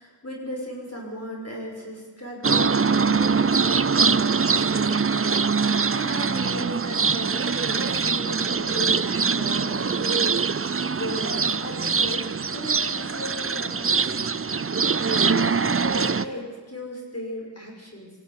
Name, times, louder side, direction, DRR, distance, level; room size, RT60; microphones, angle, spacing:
voice 1, 0.0-5.0 5.9-7.4 7.7-12.2 12.5-14.3 15.2-18.1, equal, 35° left, -1 dB, 6.0 m, -36 dB
sound 1, 2.4-16.2, right 5 dB, 30° right, 0.6 m, -23 dB
21.0 x 16.0 x 9.8 m, 1.4 s
wide cardioid pair, 40°, 43 cm